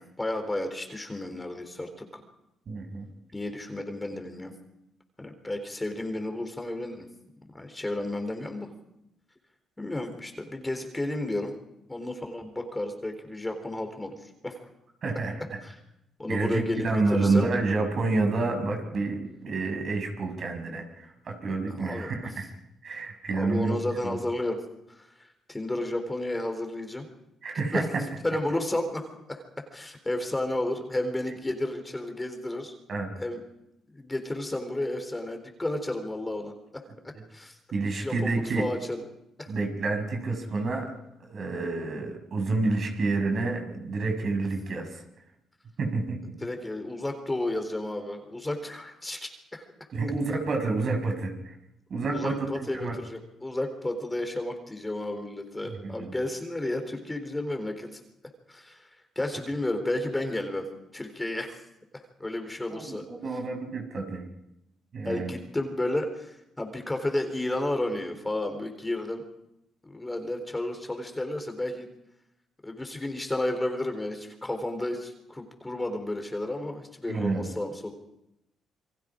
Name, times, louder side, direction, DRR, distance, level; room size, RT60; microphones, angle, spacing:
voice 1, 0.0-2.1 3.3-4.5 5.2-7.1 7.5-8.7 9.8-11.5 11.9-14.6 15.6-15.8 16.2-17.5 21.8-22.3 23.3-24.6 24.9-27.1 27.7-27.9 28.2-32.7 33.2-33.4 33.9-36.9 37.3-37.6 37.8-39.0 39.4-39.5 46.4-49.7 52.1-58.0 58.5-58.9 59.2-60.7 60.9-61.6 61.9-63.1 65.0-69.2 69.8-71.9 72.6-77.9, left 1 dB, 15° left, 6 dB, 3.7 m, -32 dB
voice 2, 2.7-3.1 15.0-15.6 16.3-22.5 22.8-23.8 24.0-24.2 27.4-28.0 32.9-33.1 37.7-38.7 39.5-40.9 41.2-45.0 45.8-46.4 49.9-51.6 51.9-52.4 52.7-53.0 55.7-56.1 62.7-64.2 64.9-65.3 77.1-77.5, right 3 dB, 55° right, 4 dB, 6.6 m, -29 dB
29.0 x 23.0 x 5.1 m, 0.85 s
cardioid pair, 90°, 0 cm